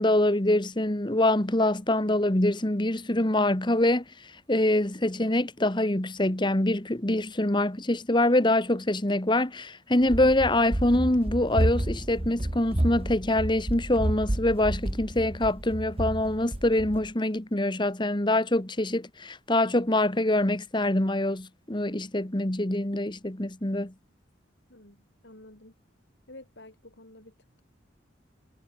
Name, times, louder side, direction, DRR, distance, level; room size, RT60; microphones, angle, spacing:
voice 1, 0.0-4.0 4.5-23.9, left 1 dB, 25° left, 1.5 m, -25 dB
Run, 10.0-17.1, right 1 dB, 30° right, 1.2 m, -30 dB
voice 2, 24.7-25.7 26.3-27.6, left 1 dB, 70° left, 5.6 m, -50 dB
head